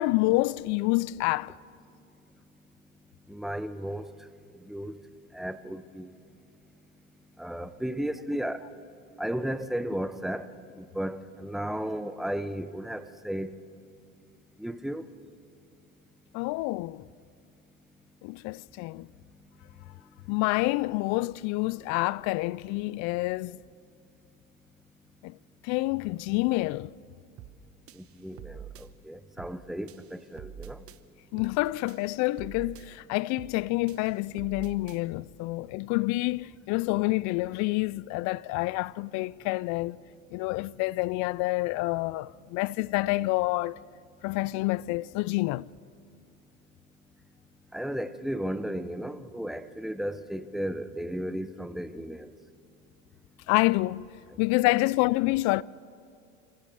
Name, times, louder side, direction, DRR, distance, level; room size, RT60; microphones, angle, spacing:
voice 1, 0.0-1.6 16.3-17.0 18.2-19.1 20.3-23.6 25.2-25.4 25.6-26.9 31.3-40.0 40.3-43.8 44.2-45.7 53.5-54.1 54.4-55.6, left 21 dB, 45° left, 0.4 m, -28 dB
voice 2, 3.3-4.1 4.7-5.0 5.3-6.1 7.4-8.7 9.2-10.5 10.8-13.5 14.6-15.1 28.2-28.6 29.1-30.8 47.7-52.3, right 1 dB, ahead, 0.7 m, -34 dB
sound 1, 27.4-27.6 27.9-28.9 29.4-29.6 29.9-31.0 31.4-31.6 31.9-32.9 33.4-33.6 33.9-35.0, right 10 dB, 35° right, 1.1 m, -46 dB
26.0 x 15.5 x 6.7 m
hypercardioid pair, 100°, 40 cm